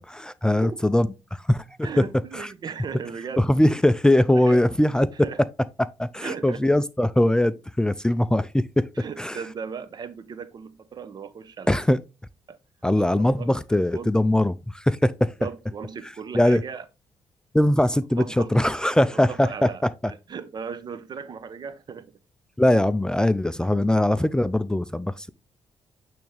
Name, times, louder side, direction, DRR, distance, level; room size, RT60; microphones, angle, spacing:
voice 1, 0.0-2.0 2.3-2.5 3.4-5.1 5.8-8.9 9.2-9.4 11.7-12.0 12.8-15.3 16.3-16.6 17.5-20.1 22.6-25.3, left 1 dB, 10° left, 0.4 m, -21 dB
voice 2, 0.6-0.9 1.8-3.5 4.3-4.6 5.1-5.4 6.2-6.7 9.0-11.9 12.5-12.6 13.0-13.5 13.9-14.1 15.4-16.8 18.1-18.5 19.1-22.2, right 6 dB, 50° right, 0.8 m, -37 dB
8.6 x 3.5 x 3.3 m
cardioid pair, 70°, 9 cm